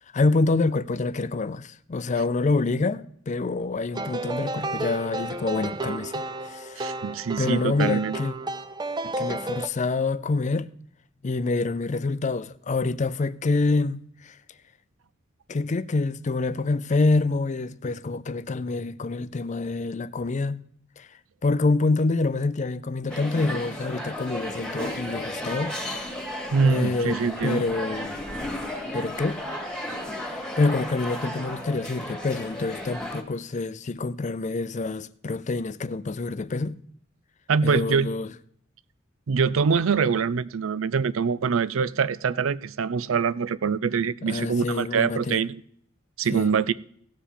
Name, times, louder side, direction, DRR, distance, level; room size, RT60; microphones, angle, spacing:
voice 1, 0.1-6.9 7.4-8.3 9.0-10.7 11.2-14.4 15.5-20.6 21.0-21.1 21.4-25.8 26.6-28.2 28.9-29.4 30.2-36.8 37.6-38.3 44.2-45.4 46.3-46.5, left 3 dB, 35° left, 0.5 m, -26 dB
sound 1, 3.9-9.7, right 2 dB, 20° right, 0.5 m, -32 dB
voice 2, 6.8-8.2 26.5-27.6 37.5-38.1 39.3-45.6 46.2-46.7, right 5 dB, 85° right, 0.5 m, -24 dB
sound 2, 23.1-33.2, left 1 dB, 5° left, 1.7 m, -34 dB
17.0 x 7.1 x 4.4 m
head